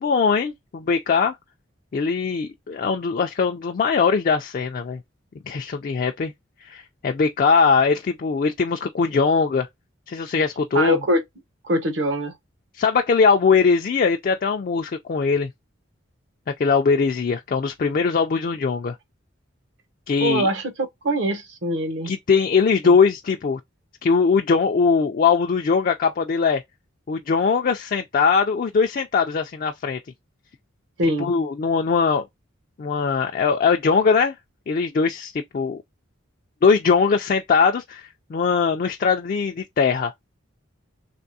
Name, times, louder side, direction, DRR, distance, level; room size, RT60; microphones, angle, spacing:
voice 1, 0.0-1.4 1.9-5.0 5.5-6.3 6.6-9.7 10.1-11.0 12.8-15.5 16.6-19.0 20.1-20.5 22.0-23.6 24.0-26.6 27.1-30.0 31.2-32.2 32.8-34.3 34.7-35.8 36.6-40.1, left 5 dB, 45° left, 0.3 m, -21 dB
voice 2, 10.7-11.2 11.6-12.3 20.2-20.7 21.0-22.1 22.8-23.0 31.0-31.3, right 1 dB, 65° right, 0.9 m, -23 dB
3.4 x 3.3 x 2.6 m
head